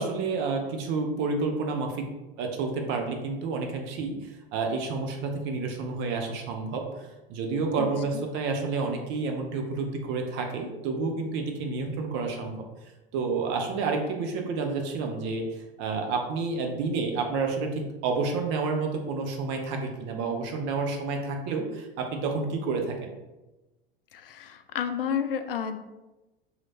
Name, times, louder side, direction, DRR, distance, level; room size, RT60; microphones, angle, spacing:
voice 1, 0.0-2.1 2.4-12.6 13.1-23.1, right 4 dB, 40° right, 3 dB, 0.6 m, -30 dB
voice 2, 24.1-25.8, left 8 dB, 70° left, 9 dB, 0.5 m, -30 dB
3.0 x 2.8 x 4.0 m, 1.1 s
figure-of-eight pair, 85°, 30 cm